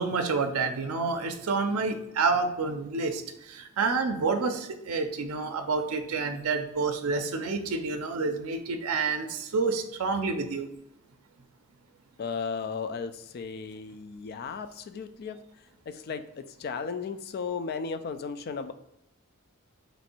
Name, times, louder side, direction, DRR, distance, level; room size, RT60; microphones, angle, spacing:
voice 1, 0.0-10.7, right 4 dB, 85° right, 5 dB, 0.5 m, -29 dB
voice 2, 12.2-15.4 15.9-18.7, left 5 dB, 45° left, 10 dB, 0.3 m, -35 dB
3.1 x 2.6 x 4.2 m, 0.85 s
head